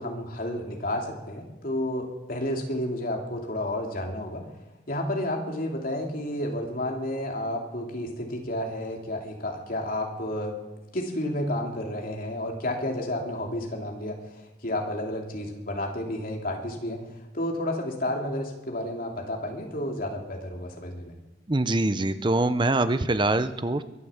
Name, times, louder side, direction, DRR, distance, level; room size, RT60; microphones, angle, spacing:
voice 1, 0.0-4.5 4.9-10.5 10.9-14.2 14.6-17.0 17.3-21.1, left 1 dB, 50° left, 1 dB, 2.8 m, -31 dB
voice 2, 21.5-23.8, right 2 dB, 25° right, 12 dB, 0.7 m, -24 dB
23.0 x 8.5 x 7.2 m, 1.0 s
head